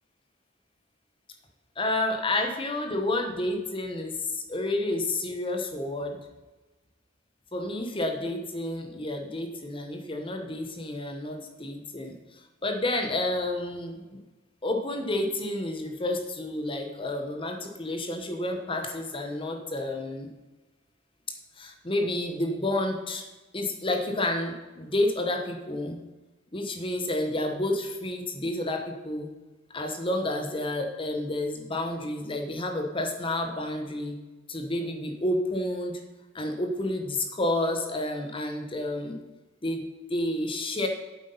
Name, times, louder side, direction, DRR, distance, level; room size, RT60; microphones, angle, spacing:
voice 1, 1.8-6.2 7.5-12.1 12.6-14.2 14.6-20.3 21.6-23.2 23.5-26.0 26.5-29.3 29.7-34.2 34.5-35.9 36.3-39.2 39.6-39.8 40.1-40.9, left 1 dB, 25° left, 4 dB, 1.1 m, -30 dB
8.2 x 7.9 x 5.5 m, 1.2 s
head